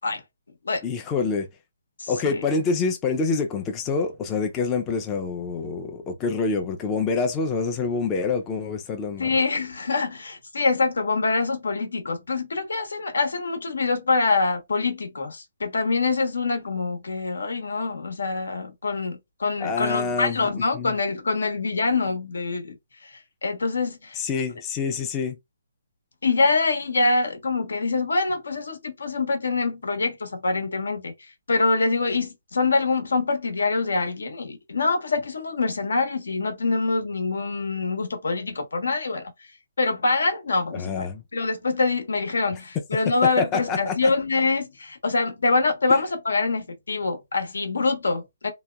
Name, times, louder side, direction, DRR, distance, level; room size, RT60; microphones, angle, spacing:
voice 1, 0.8-1.5 2.1-9.3 19.6-20.4 20.7-20.9 24.1-25.4 40.7-41.2 43.4-44.0, left 4 dB, 15° left, 0.3 m, -26 dB
voice 2, 2.0-2.4 9.2-22.8 23.0-24.2 26.2-31.1 31.5-39.3 39.8-41.1 41.3-48.5, left 3 dB, 90° left, 1.0 m, -25 dB
2.8 x 2.1 x 2.2 m
hypercardioid pair, 170°, 0 cm